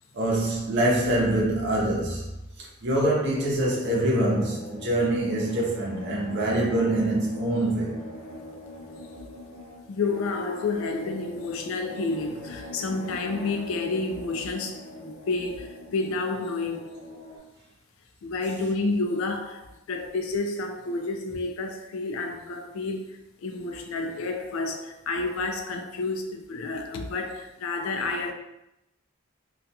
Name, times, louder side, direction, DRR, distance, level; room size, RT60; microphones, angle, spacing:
voice 1, 0.1-2.2 2.6-8.0, right 1 dB, 55° right, 0.7 m, -25 dB
sound 1, 3.6-17.4, left 2 dB, 40° left, 0.6 m, -42 dB
voice 2, 9.9-17.0 18.2-28.3, left 3 dB, 70° left, 0.3 m, -30 dB
2.4 x 2.1 x 2.7 m
head